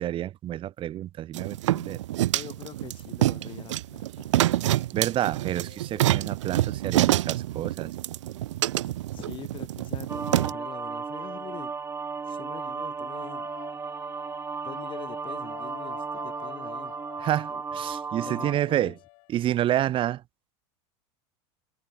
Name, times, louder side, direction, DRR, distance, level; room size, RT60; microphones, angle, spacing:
voice 1, 0.0-2.0 4.9-7.9 17.2-18.9 19.3-20.2, right 12 dB, 35° right, 1.2 m, -29 dB
sound 1, 1.3-10.5, right 14 dB, 90° right, 1.6 m, -27 dB
voice 2, 2.3-4.3 8.8-11.7 12.3-13.5 14.6-16.9 17.5-17.6 18.2-18.9, left 11 dB, 35° left, 6.9 m, -44 dB
sound 2, 5.0-10.2 12.1-19.7, left 40 dB or more, 60° left, 7.6 m, -50 dB
sound 3, 10.1-18.5, right 5 dB, 15° right, 2.8 m, -35 dB
supercardioid pair, 130°, 15 cm